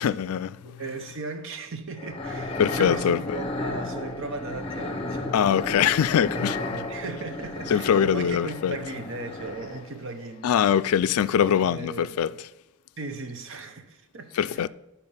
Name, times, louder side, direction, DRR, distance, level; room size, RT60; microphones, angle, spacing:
voice 1, 0.0-0.7 2.6-3.4 5.3-6.6 7.7-8.8 10.4-12.3 14.4-14.7, left 8 dB, 75° left, 0.3 m, -23 dB
voice 2, 0.6-6.0 6.4-10.8 11.5-12.2 13.0-14.7, right 3 dB, 60° right, 0.8 m, -37 dB
sound 1, 2.0-10.0, left 2 dB, 25° left, 0.8 m, -33 dB
11.5 x 4.1 x 5.6 m
head